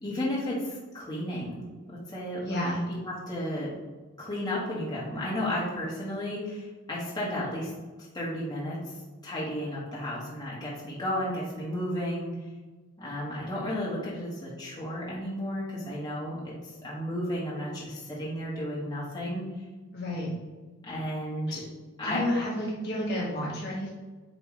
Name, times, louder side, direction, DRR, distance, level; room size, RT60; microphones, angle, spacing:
voice 1, 0.0-1.6 1.9-3.7 4.2-7.7 8.1-8.8 9.2-12.3 13.0-16.5 16.8-19.4 20.8-21.6 22.0-22.2, left 1 dB, 20° left, -7 dB, 1.6 m, -33 dB
voice 2, 2.4-2.8 19.9-20.3 21.5-21.6 22.0-23.9, left 1 dB, 50° left, -5 dB, 1.4 m, -31 dB
8.7 x 3.4 x 3.2 m, 1.3 s
head